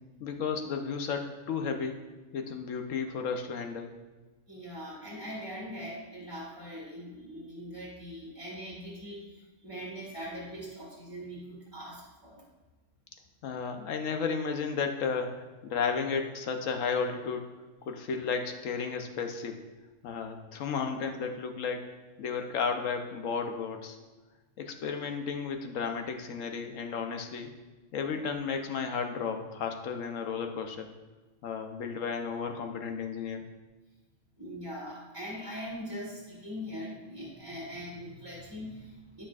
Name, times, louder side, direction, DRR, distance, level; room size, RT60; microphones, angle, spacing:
voice 1, 0.2-2.0 2.3-3.9 13.4-17.5 17.9-19.6 20.0-21.8 22.2-24.0 24.6-27.5 27.9-30.9 31.4-33.4, left 5 dB, 90° left, 5 dB, 1.1 m, -33 dB
voice 2, 4.5-12.4 34.4-39.2, equal, 20° right, -6 dB, 1.6 m, -41 dB
9.9 x 6.4 x 2.4 m, 1.2 s
omnidirectional pair, 1.3 m